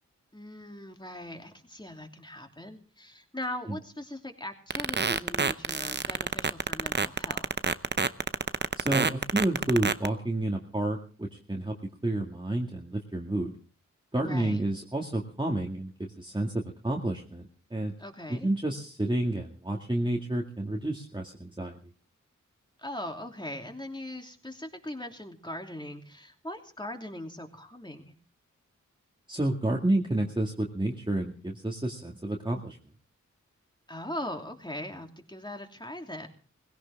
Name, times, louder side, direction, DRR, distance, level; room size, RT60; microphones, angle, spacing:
voice 1, 0.3-7.5 14.2-14.6 18.0-18.5 22.8-28.1 33.9-36.3, left 1 dB, 15° left, 3 dB, 2.9 m, -40 dB
sound 1, 4.7-10.1, right 4 dB, 35° right, 0.8 m, -26 dB
voice 2, 8.8-11.7 12.0-13.5 14.1-16.5 16.8-17.9 18.3-21.8 29.3-32.8, right 1 dB, 15° right, 0 dB, 2.1 m, -30 dB
18.5 x 16.5 x 3.6 m, 0.40 s
cardioid pair, 40°, 31 cm